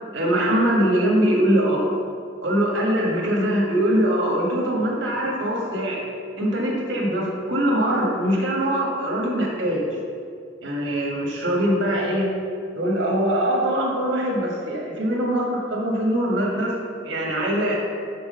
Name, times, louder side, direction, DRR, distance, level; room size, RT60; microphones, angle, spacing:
voice 1, 0.1-1.8 2.4-6.0 6.4-9.8 10.6-12.3 12.7-16.8 17.0-17.8, right 1 dB, 75° right, -2 dB, 1.6 m, -22 dB
6.2 x 4.7 x 6.4 m, 2.3 s
head